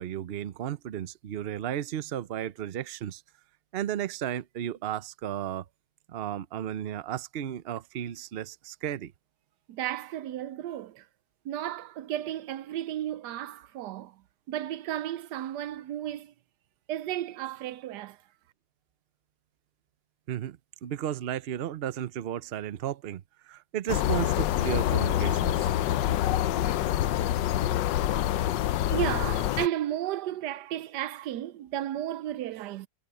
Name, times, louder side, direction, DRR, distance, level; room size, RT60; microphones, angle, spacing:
voice 1, 0.0-3.2 3.7-5.7 6.1-9.1 20.3-25.7, right 10 dB, 55° right, 0.6 m, -34 dB
voice 2, 9.7-11.1 11.4-14.2 14.5-16.3 16.9-18.2 28.4-28.6 28.9-32.9, right 12 dB, 75° right, 1.2 m, -33 dB
sound 1, 23.9-29.7, left 12 dB, 90° left, 1.3 m, -26 dB
omnidirectional pair, 1.9 m